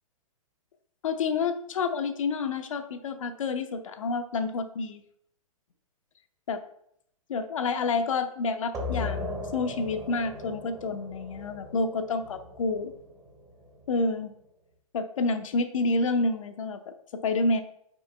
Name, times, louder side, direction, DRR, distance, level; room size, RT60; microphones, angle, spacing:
voice 1, 1.0-5.0 6.5-6.6 7.3-12.9 13.9-14.3 14.9-17.6, left 3 dB, 65° left, 9 dB, 0.7 m, -29 dB
sound 1, 8.7-14.1, left 2 dB, 15° right, 1.2 m, -37 dB
6.1 x 4.7 x 3.3 m, 0.71 s
figure-of-eight pair, 120°, 18 cm